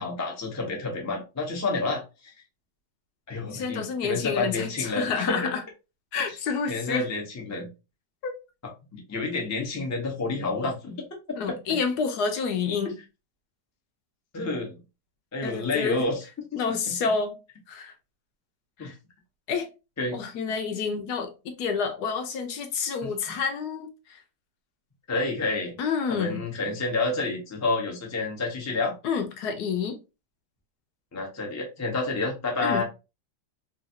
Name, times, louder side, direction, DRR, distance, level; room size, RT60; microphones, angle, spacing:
voice 1, 0.0-2.3 3.3-5.5 6.7-7.7 8.9-11.1 11.5-11.6 14.3-14.8 15.3-16.2 16.5-16.9 18.8-18.9 20.0-20.2 23.3-23.4 25.1-25.8 26.1-28.9 31.1-32.8, left 3 dB, 25° left, 0.3 m, -29 dB
voice 2, 3.4-5.6 6.1-7.1 8.2-8.3 11.4-12.9 15.4-16.0 16.6-17.4 17.7-17.9 18.8-18.9 19.5-19.7 20.1-24.2 25.8-26.4 29.0-30.0 32.6-32.8, left 5 dB, 70° left, 1.1 m, -29 dB
3.1 x 2.6 x 2.7 m
omnidirectional pair, 1.9 m